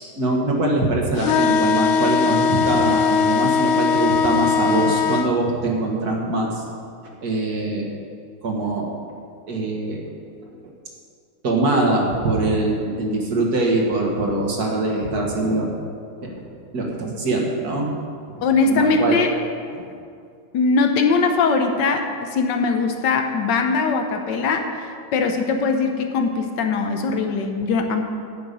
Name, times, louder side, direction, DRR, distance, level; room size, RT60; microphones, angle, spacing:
voice 1, 0.2-6.6 7.2-7.9 8.4-8.9 9.5-10.0 11.4-15.7 16.2-16.4 16.7-17.9 18.3-18.4 18.7-19.2 19.8-19.9, right 2 dB, 50° right, -1 dB, 1.8 m, -23 dB
sound 1, 1.2-5.3, left 6 dB, 80° left, 1.5 m, -20 dB
voice 2, 18.4-19.3 20.5-24.7 25.1-28.0, left 4 dB, 60° left, 5 dB, 1.4 m, -21 dB
10.5 x 5.8 x 8.4 m, 2.3 s
omnidirectional pair, 2.4 m